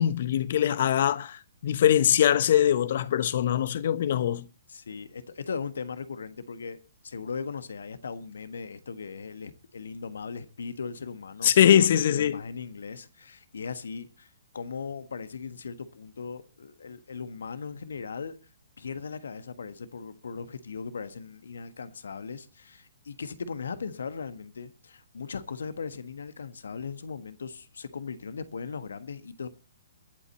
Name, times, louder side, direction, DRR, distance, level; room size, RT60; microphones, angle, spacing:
voice 1, 0.0-4.5 11.4-12.4, left 10 dB, 50° left, 1.0 m, -22 dB
voice 2, 4.7-18.4 18.8-29.5, left 5 dB, 70° left, 1.4 m, -38 dB
23.0 x 8.3 x 4.1 m
figure-of-eight pair, 125°, 0 cm